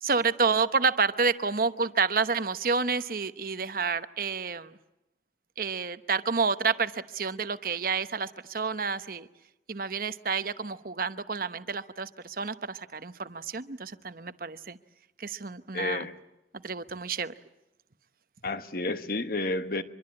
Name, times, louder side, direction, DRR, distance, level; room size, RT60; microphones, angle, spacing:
voice 1, 0.0-4.8 5.6-9.3 9.7-14.8 15.2-16.1 16.5-17.3, right 5 dB, 50° right, 11 dB, 1.0 m, -29 dB
voice 2, 15.7-16.2 18.4-19.8, left 2 dB, 55° left, 9 dB, 1.4 m, -30 dB
25.5 x 23.0 x 8.7 m, 0.92 s
head